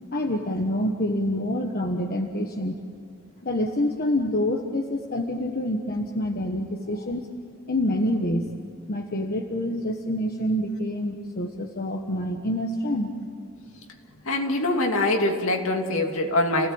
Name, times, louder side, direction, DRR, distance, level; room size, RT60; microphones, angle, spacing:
voice 1, 0.1-2.8 3.4-7.3 7.7-8.5 8.9-13.1, left 1 dB, 45° left, 3 dB, 1.3 m, -27 dB
voice 2, 14.3-16.7, left 2 dB, 65° left, 3 dB, 2.6 m, -23 dB
29.0 x 17.0 x 8.8 m, 2.6 s
head